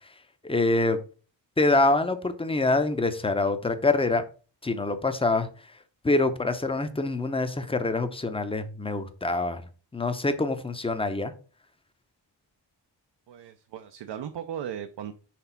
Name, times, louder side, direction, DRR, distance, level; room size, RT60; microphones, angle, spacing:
voice 1, 0.4-1.0 1.6-4.2 4.6-5.5 6.0-9.6 9.9-11.3, left 2 dB, 15° left, 0.7 m, -25 dB
voice 2, 13.3-15.1, right 9 dB, 75° right, 0.6 m, -37 dB
6.0 x 3.5 x 5.6 m
wide cardioid pair, 140°, 43 cm